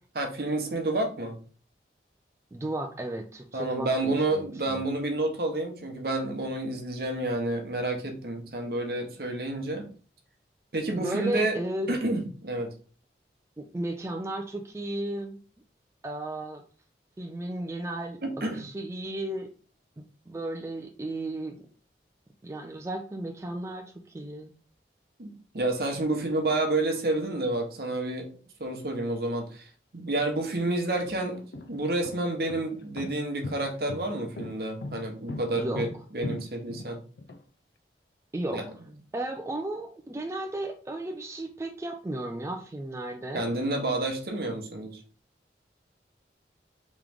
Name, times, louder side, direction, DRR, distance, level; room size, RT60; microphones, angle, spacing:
voice 1, 0.1-1.4 3.5-9.9 10.7-11.6 11.9-12.7 18.2-18.6 25.2-28.3 28.6-35.9 36.1-37.0 38.5-38.6 43.3-45.0, right 2 dB, 60° right, 3 dB, 0.9 m, -29 dB
voice 2, 2.5-4.8 10.9-12.0 13.6-15.4 16.0-16.6 17.2-18.2 18.5-19.5 20.0-21.6 22.4-24.5 35.5-35.8 38.3-38.6 39.1-43.5, right 1 dB, 15° right, 3 dB, 0.3 m, -34 dB
sound 1, 30.1-30.2 30.9-37.4, left 2 dB, 70° left, 0.4 m, -39 dB
3.7 x 3.1 x 3.4 m, 0.41 s
head